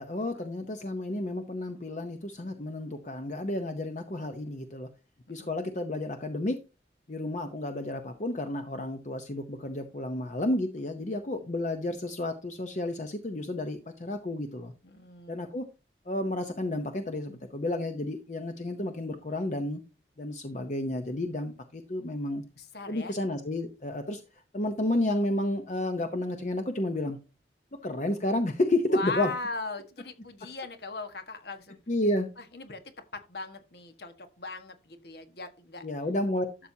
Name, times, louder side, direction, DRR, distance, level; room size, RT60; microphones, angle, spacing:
voice 1, 0.0-4.9 5.3-6.6 7.1-14.7 15.3-15.6 16.1-19.8 20.2-22.4 22.9-24.2 24.5-27.2 27.8-29.3 31.9-32.3 35.8-36.5, left 1 dB, 40° left, 7 dB, 0.8 m, -31 dB
voice 2, 14.8-15.4 22.6-23.1 28.9-31.8 32.4-32.8 33.1-35.9, left 3 dB, 65° left, 7 dB, 1.4 m, -39 dB
12.5 x 7.0 x 2.8 m, 0.30 s
head